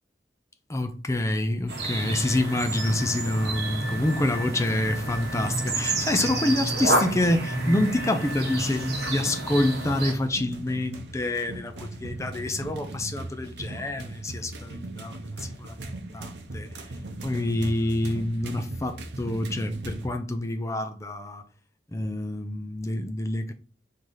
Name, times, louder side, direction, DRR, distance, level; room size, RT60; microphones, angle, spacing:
voice 1, 0.7-16.7 17.2-21.4 21.9-23.5, left 1 dB, 15° left, 0.5 m, -27 dB
sound 1, 1.7-10.1, right 2 dB, 65° right, 1.4 m, -30 dB
sound 2, 1.8-10.0, equal, 70° left, 1.1 m, -42 dB
sound 3, 2.5-20.1, right 2 dB, 80° right, 0.7 m, -40 dB
4.9 x 2.8 x 3.8 m
head